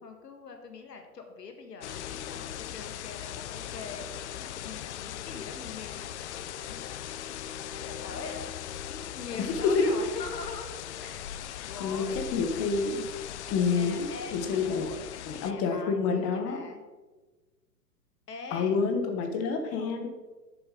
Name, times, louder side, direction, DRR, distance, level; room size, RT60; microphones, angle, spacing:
voice 1, 0.0-7.0 7.6-8.5 8.9-10.7 11.0-12.2 13.4-16.8 18.3-18.8 19.8-20.1, left 4 dB, 80° left, 5 dB, 1.6 m, -43 dB
sound 1, 1.8-15.5, left 10 dB, 45° left, 0.5 m, -39 dB
voice 2, 9.4-9.9 11.6-13.1 13.5-14.9 15.2-16.6 18.5-20.1, left 5 dB, 30° left, 4 dB, 1.2 m, -28 dB
11.5 x 7.0 x 3.8 m, 1.2 s
hypercardioid pair, 110°, 48 cm